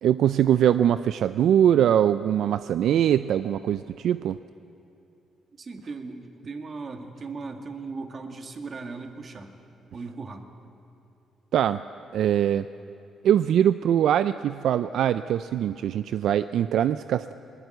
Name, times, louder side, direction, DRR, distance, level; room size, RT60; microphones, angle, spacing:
voice 1, 0.0-4.4 11.5-11.8 12.1-12.7 13.2-17.3, right 10 dB, 75° right, 13 dB, 0.4 m, -22 dB
voice 2, 5.6-9.5 9.9-10.4, right 4 dB, 40° right, 5 dB, 2.1 m, -37 dB
21.0 x 20.0 x 8.0 m, 2.8 s
cardioid pair, 90°, 0 cm